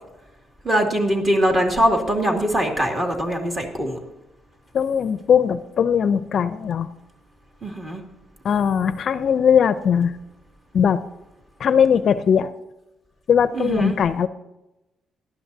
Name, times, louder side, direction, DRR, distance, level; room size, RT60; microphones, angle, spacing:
voice 1, 0.6-4.0 7.6-8.0 13.5-14.0, equal, 20° right, 2 dB, 2.4 m, -22 dB
voice 2, 4.7-6.9 8.4-10.1 10.7-11.0 11.6-12.5 13.3-14.3, left 7 dB, 50° left, 13 dB, 0.5 m, -19 dB
18.0 x 12.0 x 2.8 m, 0.95 s
cardioid pair, 135°, 0 cm